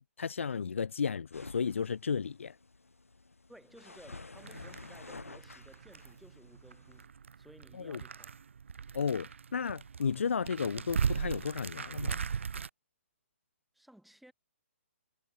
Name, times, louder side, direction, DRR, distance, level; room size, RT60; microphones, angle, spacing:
voice 1, 0.0-2.6 7.7-8.0 8.9-12.2, left 6 dB, 65° left, 0.7 m, -33 dB
sound 1, 1.3-7.1, left 3 dB, 80° left, 2.8 m, -51 dB
voice 2, 3.5-7.1 7.4-8.4 13.7-14.3, right 1 dB, ahead, 6.8 m, -57 dB
sound 2, 4.4-12.7, right 6 dB, 65° right, 2.7 m, -38 dB
figure-of-eight pair, 130°, 7 cm